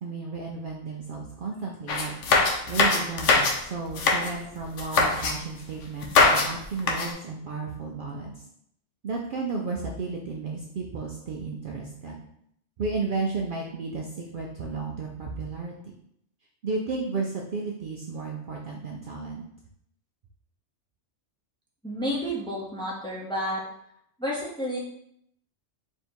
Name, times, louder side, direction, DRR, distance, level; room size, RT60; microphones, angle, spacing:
voice 1, 0.0-2.1 2.7-8.4 9.0-12.2 12.8-14.1 14.3-15.7 16.6-19.4, right 4 dB, 60° right, -1 dB, 0.6 m, -33 dB
sound 1, 1.9-3.6 3.9-4.3 4.8-5.3 6.0-6.5 6.8-7.1, left 3 dB, 80° left, 1.0 m, -21 dB
voice 2, 21.8-23.6 24.2-24.8, equal, 5° left, -4 dB, 0.7 m, -30 dB
3.5 x 2.7 x 4.4 m, 0.74 s
omnidirectional pair, 1.2 m